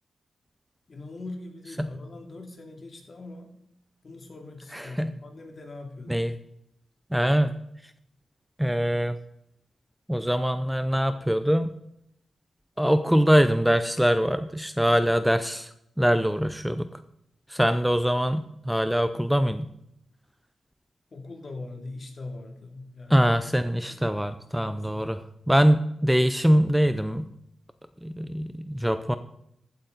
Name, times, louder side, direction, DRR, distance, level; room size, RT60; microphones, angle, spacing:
voice 1, 0.9-3.5 4.0-6.2 21.1-23.3 23.8-24.1 24.6-25.1, left 2 dB, 45° left, 2 dB, 2.5 m, -41 dB
voice 2, 4.7-5.1 6.1-6.3 7.1-7.5 8.6-9.2 10.1-11.7 12.8-15.7 16.0-16.9 17.5-19.7 23.1-25.2 25.5-27.3 28.0-29.2, equal, 5° right, 10 dB, 0.6 m, -23 dB
15.0 x 8.6 x 4.0 m, 0.77 s
cardioid pair, 85°, 0 cm